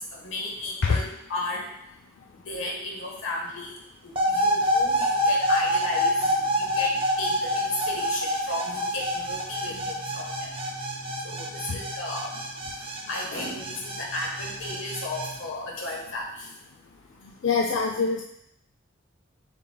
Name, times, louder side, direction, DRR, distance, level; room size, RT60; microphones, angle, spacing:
voice 1, 0.0-1.7 2.5-3.7 4.0-10.5 11.2-12.3 12.8-16.5, left 2 dB, 90° left, -1 dB, 1.1 m, -34 dB
sound 1, 4.2-15.3, equal, 30° right, 0.5 m, -27 dB
voice 2, 17.4-18.2, left 4 dB, 65° left, -1 dB, 0.4 m, -24 dB
6.8 x 3.2 x 2.2 m, 0.79 s
head